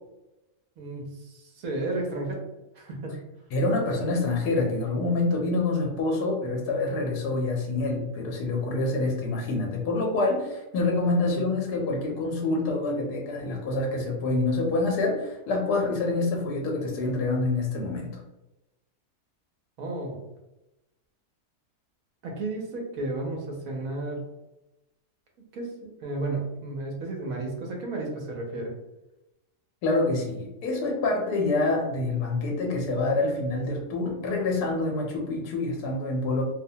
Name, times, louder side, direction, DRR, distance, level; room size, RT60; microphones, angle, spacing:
voice 1, 0.8-2.4 2.7-3.2 11.2-11.5 19.8-20.2 22.2-24.2 25.5-28.7, right 2 dB, 65° right, 0 dB, 1.0 m, -33 dB
voice 2, 3.5-18.2 29.8-36.4, left 2 dB, 80° left, 0 dB, 1.1 m, -26 dB
2.7 x 2.1 x 2.7 m, 0.97 s
omnidirectional pair, 1.7 m